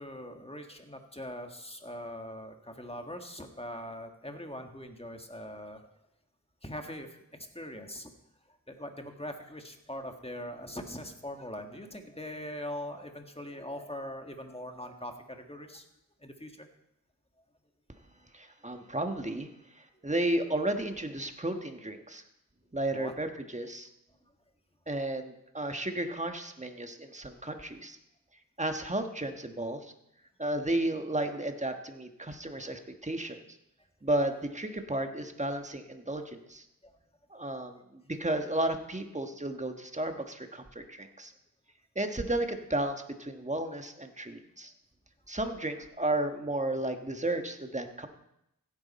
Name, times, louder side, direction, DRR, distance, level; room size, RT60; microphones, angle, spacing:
voice 1, 0.0-5.8 6.6-8.1 8.5-15.8 16.2-16.7 20.0-20.1 22.9-23.1 36.8-37.0, left 1 dB, 15° left, 4 dB, 1.7 m, -42 dB
voice 2, 18.3-22.2 22.7-23.9 24.9-28.0 28.6-29.9 30.4-33.4 34.0-36.6 37.3-41.3 41.9-44.7 45.3-48.1, right 1 dB, 20° right, 6 dB, 1.4 m, -33 dB
16.0 x 9.8 x 4.3 m, 0.83 s
wide cardioid pair, 45°, 34 cm